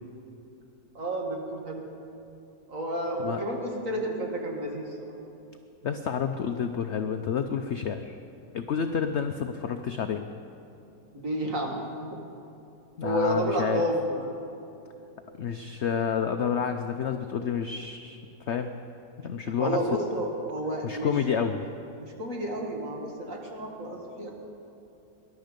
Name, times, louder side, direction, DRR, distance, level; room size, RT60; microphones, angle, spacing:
voice 1, 0.9-1.8 2.7-5.1 11.1-11.9 13.0-14.3 19.5-21.1 22.0-24.3, right 1 dB, 50° right, 0 dB, 2.2 m, -31 dB
voice 2, 5.8-8.2 8.5-10.2 13.0-13.8 15.4-18.2 18.5-18.7 19.2-19.8 20.8-21.7, left 7 dB, 70° left, 7 dB, 0.6 m, -29 dB
20.0 x 11.5 x 5.2 m, 2.8 s
omnidirectional pair, 1.9 m